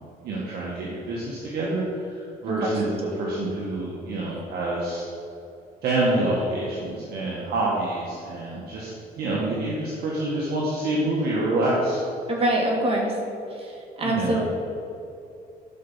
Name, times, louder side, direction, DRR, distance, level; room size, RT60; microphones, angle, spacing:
voice 1, 0.2-5.0 5.8-8.9 9.2-12.0 14.0-14.4, right 2 dB, 70° right, -5 dB, 2.0 m, -27 dB
voice 2, 2.6-3.0 12.3-13.2 13.6-14.4, right 1 dB, 35° right, -1 dB, 2.5 m, -25 dB
12.0 x 5.9 x 5.8 m, 2.7 s
cardioid pair, 110°, 17 cm